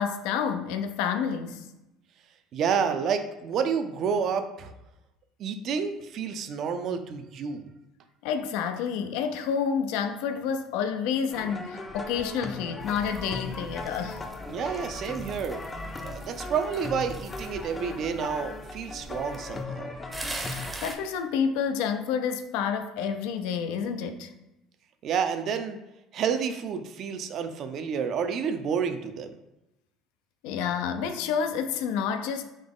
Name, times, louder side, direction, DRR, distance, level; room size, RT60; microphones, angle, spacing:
voice 1, 0.0-1.6 8.2-14.2 20.8-24.3 30.4-32.4, left 7 dB, 80° left, 8 dB, 0.4 m, -29 dB
voice 2, 2.5-4.7 5.4-7.7 14.5-15.6 16.0-19.9 25.0-25.8 26.1-29.4, right 6 dB, 55° right, 8 dB, 0.4 m, -29 dB
sound 1, 11.3-20.7, left 3 dB, 25° left, 0.5 m, -38 dB
sound 2, 12.8-19.6 20.1-21.0, right 2 dB, 15° right, 0.6 m, -42 dB
3.9 x 2.9 x 3.7 m, 0.93 s
supercardioid pair, 90°, 0 cm